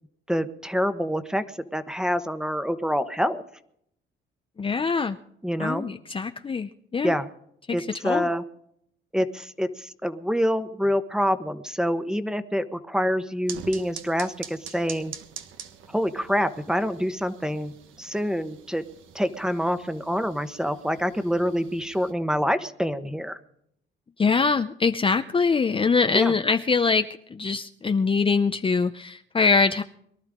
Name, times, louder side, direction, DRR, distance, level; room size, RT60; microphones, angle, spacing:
voice 1, 0.3-1.4 1.7-3.4 5.4-5.9 7.0-7.3 7.7-8.4 9.1-15.1 15.9-17.7 18.0-18.8 19.1-23.4 26.1-26.3, equal, 5° right, 10 dB, 1.2 m, -26 dB
voice 2, 4.6-5.2 5.6-7.1 7.7-8.3 24.2-29.8, left 4 dB, 25° left, 8 dB, 0.6 m, -23 dB
sound 1, 13.5-22.1, right 8 dB, 90° right, 1.4 m, -45 dB
23.0 x 12.5 x 3.7 m, 0.70 s
cardioid pair, 90°, 20 cm